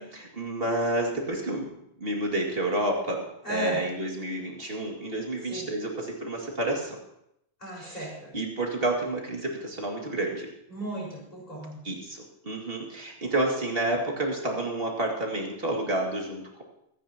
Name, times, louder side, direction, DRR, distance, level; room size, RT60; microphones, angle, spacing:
voice 1, 0.0-1.7 2.0-3.2 3.5-7.0 7.8-10.5 11.8-16.6, right 1 dB, 60° right, 0 dB, 2.6 m, -30 dB
voice 2, 3.4-3.8 5.5-5.7 7.6-8.3 10.7-11.8, right 1 dB, 35° left, -5 dB, 5.2 m, -35 dB
22.5 x 10.0 x 2.9 m, 0.79 s
omnidirectional pair, 1.1 m